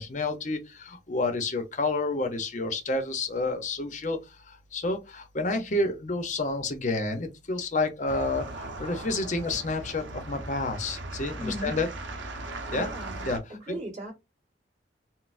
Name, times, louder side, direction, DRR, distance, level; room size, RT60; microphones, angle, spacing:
voice 1, 0.0-11.9 12.7-12.9 13.2-13.8, left 2 dB, 40° left, 0.6 m, -30 dB
sound 1, 8.1-13.4, right 2 dB, 75° right, 0.7 m, -38 dB
voice 2, 11.4-11.7 12.7-14.1, equal, 35° right, 1.6 m, -38 dB
4.0 x 2.0 x 2.4 m
head